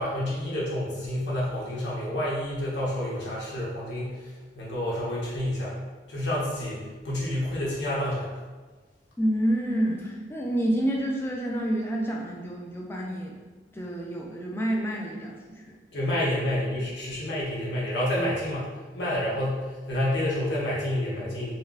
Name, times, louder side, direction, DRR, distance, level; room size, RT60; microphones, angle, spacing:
voice 1, 0.0-5.7 6.1-8.3 15.9-21.5, left 1 dB, 85° left, -6 dB, 1.0 m, -29 dB
voice 2, 9.2-13.4 13.7-15.4 15.7-15.8, right 1 dB, 15° left, -1 dB, 0.4 m, -28 dB
4.3 x 2.1 x 2.4 m, 1.4 s
head